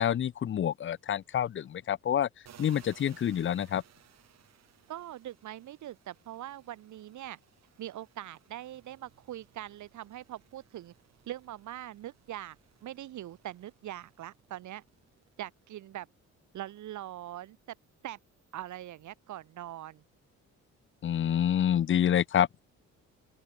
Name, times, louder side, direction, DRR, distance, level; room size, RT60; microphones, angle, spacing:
voice 1, 0.0-2.3 2.6-3.8 21.0-22.6, left 10 dB, 40° left, 0.6 m, -27 dB
sound 1, 2.4-15.8 16.2-19.1, right 9 dB, 60° right, 3.7 m, -61 dB
voice 2, 4.9-7.4 7.8-10.9 11.3-12.6 12.8-14.8 15.4-16.1 16.5-17.8 18.0-18.2 18.5-20.0, right 13 dB, 75° right, 1.8 m, -42 dB
open air
cardioid pair, 90°, 30 cm